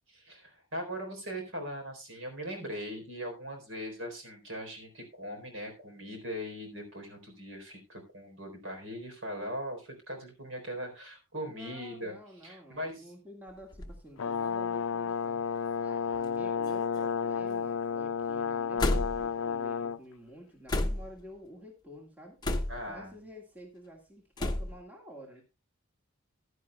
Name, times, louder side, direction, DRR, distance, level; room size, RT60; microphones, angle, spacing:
voice 1, 0.1-12.1 12.4-13.0 22.7-23.2, equal, 60° right, 3 dB, 4.0 m, -40 dB
voice 2, 11.4-22.4 22.9-25.4, equal, 10° right, -1 dB, 1.8 m, -50 dB
sound 1, 13.5-14.0 14.8-14.9 16.1-16.4 16.6-17.2 18.8-19.4 20.7-21.2 22.4-23.0 24.4-24.8, left 1 dB, 20° left, 0.9 m, -31 dB
Brass instrument, 14.2-20.0, left 6 dB, 75° left, 0.5 m, -32 dB
15.5 x 11.0 x 2.3 m, 0.27 s
head